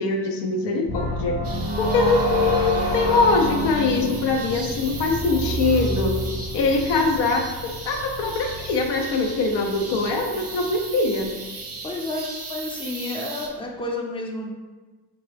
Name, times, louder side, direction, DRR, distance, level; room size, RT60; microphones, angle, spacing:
voice 1, 0.0-1.4 1.8-6.2 6.5-11.3, left 3 dB, 90° left, 2 dB, 0.6 m, -22 dB
sound 1, 0.9-6.9, right 1 dB, 70° left, 1.2 m, -28 dB
sound 2, 0.9-12.2 12.5-12.6, left 1 dB, 50° left, 0.7 m, -34 dB
sound 3, 1.4-13.5, right 3 dB, 35° right, 0.6 m, -38 dB
voice 2, 11.8-14.5, left 2 dB, 15° left, 0 dB, 0.5 m, -31 dB
3.6 x 2.4 x 3.3 m, 1.3 s
cardioid pair, 105°, 41 cm